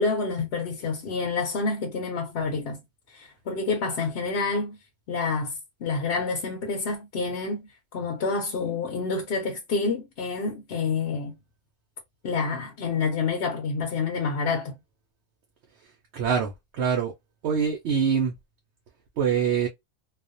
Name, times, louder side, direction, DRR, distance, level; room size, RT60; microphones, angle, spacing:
voice 1, 0.0-2.8 3.1-4.8 5.1-11.3 12.2-14.7, left 4 dB, 65° left, 0.8 m, -28 dB
voice 2, 16.1-17.1 17.4-18.3 19.2-19.7, right 7 dB, 75° right, 0.9 m, -24 dB
2.4 x 2.0 x 2.5 m
omnidirectional pair, 1.1 m